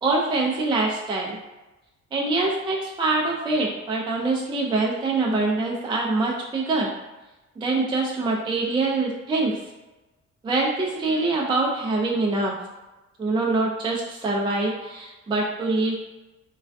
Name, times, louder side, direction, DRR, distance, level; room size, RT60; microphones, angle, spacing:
voice 1, 0.0-1.4 2.1-6.9 7.6-9.6 10.4-12.5 13.2-16.0, right 3 dB, 15° right, -2 dB, 0.3 m, -24 dB
2.3 x 2.2 x 2.4 m, 1.1 s
cardioid pair, 90°, 30 cm